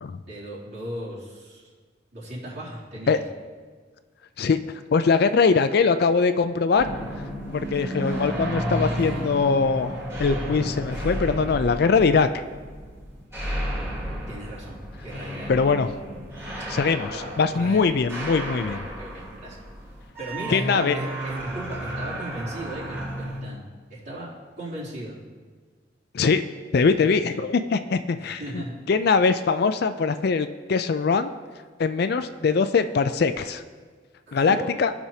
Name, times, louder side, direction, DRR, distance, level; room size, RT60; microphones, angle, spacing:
voice 1, 0.3-1.7 2.1-3.2 14.3-15.5 17.1-17.8 18.5-19.6 20.2-23.6 23.9-25.2 27.0-27.1 28.2-28.8 34.3-34.7, right 1 dB, 60° right, -8 dB, 2.9 m, -36 dB
voice 2, 4.9-6.9 7.5-12.3 15.5-15.9 16.7-18.8 20.5-21.0 26.1-26.4 26.7-31.3 31.8-33.6 34.3-34.9, left 5 dB, 55° left, 10 dB, 0.4 m, -22 dB
sound 1, 6.8-23.4, equal, 15° right, 2.6 m, -32 dB
16.0 x 6.1 x 2.8 m, 1.5 s
head